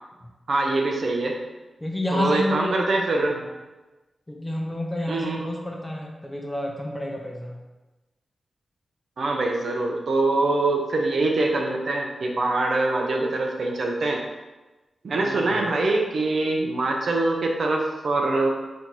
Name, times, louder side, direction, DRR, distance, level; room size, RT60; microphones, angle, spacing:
voice 1, 0.5-1.4 2.1-3.4 5.1-5.4 9.2-14.2 15.0-18.5, right 2 dB, 60° right, 1 dB, 0.6 m, -24 dB
voice 2, 1.8-2.8 3.2-3.3 4.3-7.6 15.1-15.5, left 1 dB, 10° left, 0 dB, 0.6 m, -30 dB
4.3 x 2.7 x 4.6 m, 1.1 s
wide cardioid pair, 165°, 0 cm